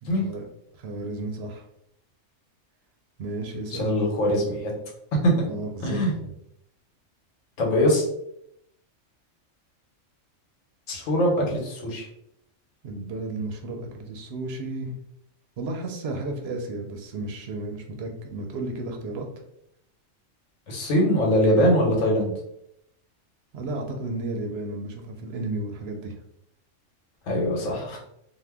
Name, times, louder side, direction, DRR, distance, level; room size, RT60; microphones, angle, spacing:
voice 1, 0.0-0.5 0.8-1.6 3.2-3.9 5.5-6.3 12.8-14.9 15.6-19.3 23.5-26.2, right 2 dB, 65° right, 3 dB, 0.7 m, -33 dB
voice 2, 3.7-4.7 5.2-5.3 5.8-6.1 7.6-8.0 10.9-12.1 20.7-22.3 27.3-28.0, equal, 80° left, -1 dB, 1.2 m, -22 dB
2.7 x 2.1 x 3.4 m, 0.76 s
omnidirectional pair, 1.3 m